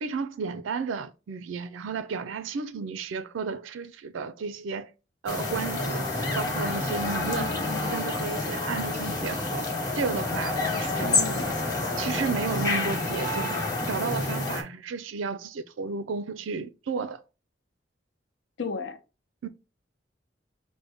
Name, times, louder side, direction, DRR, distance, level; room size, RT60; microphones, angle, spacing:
voice 1, 0.0-4.9 5.2-6.0 6.3-7.5 7.9-9.6 9.9-11.4 12.0-13.6 13.9-17.2 19.4-19.5, right 5 dB, 90° right, 0.4 m, -33 dB
sound 1, 5.3-14.6, left 2 dB, 20° left, 1.0 m, -28 dB
voice 2, 7.2-8.0 11.0-11.5 18.6-19.0, left 4 dB, 70° left, 0.7 m, -35 dB
5.3 x 2.1 x 3.4 m
head